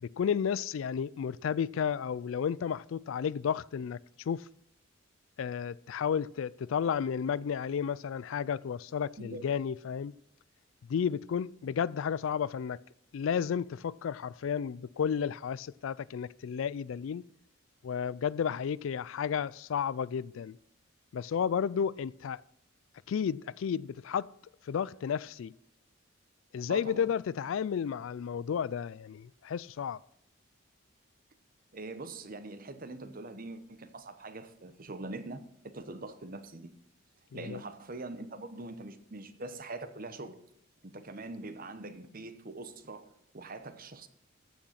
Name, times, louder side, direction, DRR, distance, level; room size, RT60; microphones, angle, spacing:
voice 1, 0.0-4.0 4.3-4.5 5.4-10.1 10.9-12.8 13.1-17.2 17.8-20.6 21.1-22.4 23.1-24.3 24.7-25.5 26.5-30.0 37.3-37.6, left 7 dB, 70° left, 0.3 m, -32 dB
voice 2, 26.7-27.1 31.7-36.7 37.3-40.4 40.8-44.1, right 2 dB, 45° right, 1.0 m, -43 dB
14.5 x 6.4 x 5.8 m
head